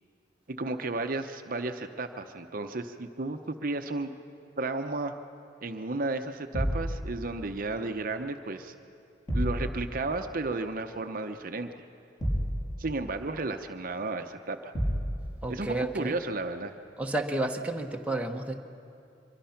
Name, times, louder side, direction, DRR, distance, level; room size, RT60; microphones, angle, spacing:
voice 1, 0.5-4.1 4.6-5.2 5.6-8.7 9.3-11.7 12.8-14.7 15.5-16.7, right 2 dB, 50° right, 7 dB, 0.8 m, -33 dB
sound 1, 6.5-6.9 9.3-9.6 12.2-12.6 14.7-15.1, equal, 20° left, 6.7 m, -28 dB
voice 2, 15.4-16.1 17.0-18.5, right 2 dB, 10° right, 2 dB, 1.2 m, -31 dB
24.5 x 22.5 x 5.9 m, 2.5 s
head